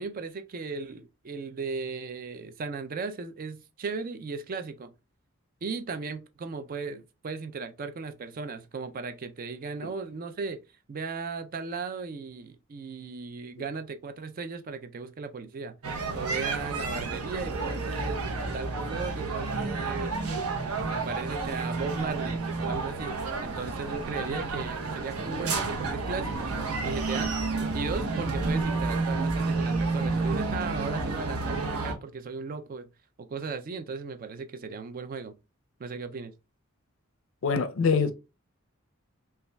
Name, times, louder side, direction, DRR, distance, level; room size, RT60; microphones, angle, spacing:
voice 1, 0.0-4.9 5.6-10.6 10.9-15.8 16.1-20.2 20.8-26.6 26.8-27.3 27.7-32.9 33.2-35.3 35.8-36.3, right 4 dB, 40° right, 0.4 m, -36 dB
sound 1, 15.8-31.9, right 3 dB, 80° right, 0.8 m, -30 dB
voice 2, 37.4-38.1, left 5 dB, 60° left, 0.4 m, -24 dB
5.4 x 2.3 x 2.2 m
head